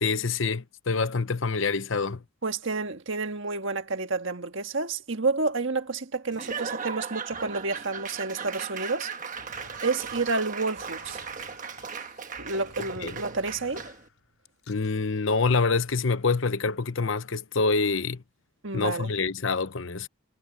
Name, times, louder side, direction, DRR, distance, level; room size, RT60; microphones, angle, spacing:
voice 1, 0.0-2.2 13.0-13.1 14.7-18.2 18.7-20.1, left 4 dB, 65° left, 0.9 m, -26 dB
voice 2, 2.4-9.1 9.8-11.2 12.4-13.8 18.6-19.1, right 3 dB, 60° right, 1.6 m, -30 dB
Laughter / Applause / Crowd, 6.3-14.1, right 6 dB, 35° right, 1.3 m, -37 dB
sound 1, 9.3-14.9, left 3 dB, 80° left, 4.9 m, -52 dB
head